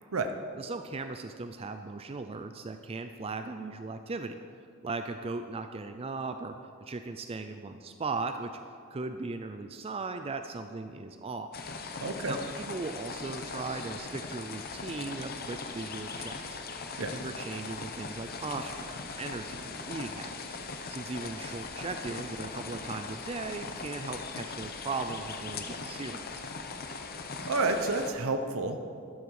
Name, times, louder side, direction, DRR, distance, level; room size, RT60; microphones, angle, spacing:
voice 1, 0.6-4.4 4.8-6.5 6.8-8.5 8.9-11.5 12.3-16.6 17.1-20.6 20.9-26.5, right 3 dB, 25° right, 8 dB, 0.4 m, -38 dB
sound 1, 11.5-28.1, left 4 dB, 45° left, 0.9 m, -40 dB
voice 2, 12.0-12.3 17.0-17.1 27.5-28.8, right 3 dB, 70° right, 6 dB, 0.8 m, -29 dB
12.0 x 12.0 x 4.8 m, 2.4 s
head